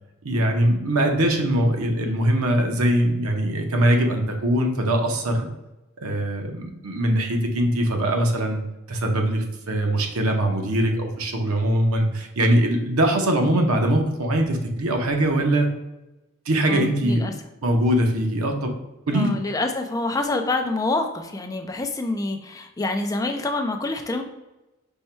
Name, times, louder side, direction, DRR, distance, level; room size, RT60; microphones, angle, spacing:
voice 1, 0.2-5.5 6.0-8.6 8.9-15.7 16.5-17.4 17.6-18.7 19.1-19.3, right 1 dB, 90° right, 3 dB, 0.8 m, -22 dB
voice 2, 16.7-17.3 19.1-24.2, left 2 dB, 15° left, 5 dB, 0.3 m, -26 dB
5.4 x 2.2 x 4.3 m, 1.0 s
head